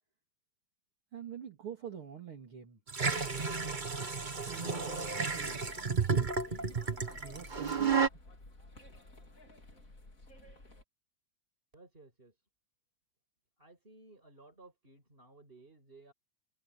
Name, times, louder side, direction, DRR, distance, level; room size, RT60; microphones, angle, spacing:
voice 1, 1.1-2.8 4.5-6.2 7.2-8.0, right 9 dB, 45° right, 3.4 m, -46 dB
sound 1, 2.9-8.1, right 5 dB, 70° right, 0.4 m, -32 dB
sound 2, 3.0-10.8, left 2 dB, 25° left, 3.7 m, -53 dB
voice 2, 11.7-12.3 13.6-16.1, right 3 dB, 15° right, 6.1 m, -57 dB
omnidirectional pair, 3.4 m